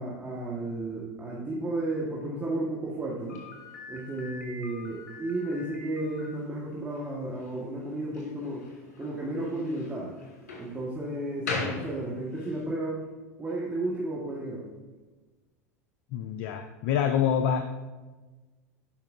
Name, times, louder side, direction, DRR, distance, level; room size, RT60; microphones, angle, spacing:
voice 1, 0.0-3.4 3.9-8.6 9.0-10.1 10.6-13.0 13.4-14.6, right 2 dB, 15° right, -6 dB, 1.7 m, -33 dB
Slam, 3.3-12.6, left 3 dB, 75° left, 2.1 m, -41 dB
voice 2, 16.1-17.6, left 8 dB, 60° left, 7 dB, 0.5 m, -27 dB
11.0 x 5.3 x 2.7 m, 1.3 s
hypercardioid pair, 85°, 9 cm